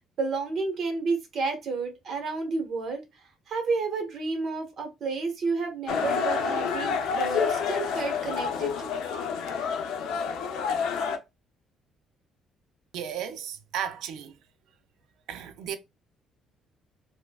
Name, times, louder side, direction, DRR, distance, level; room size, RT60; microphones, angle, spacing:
voice 1, 0.2-3.0 3.5-8.9, right 4 dB, 45° right, 1.2 m, -30 dB
sound 1, 5.9-11.2, left 6 dB, 80° left, 0.6 m, -28 dB
voice 2, 12.9-14.4 15.3-15.8, right 9 dB, 75° right, 0.5 m, -34 dB
4.6 x 2.2 x 2.3 m
cardioid pair, 150°, 0 cm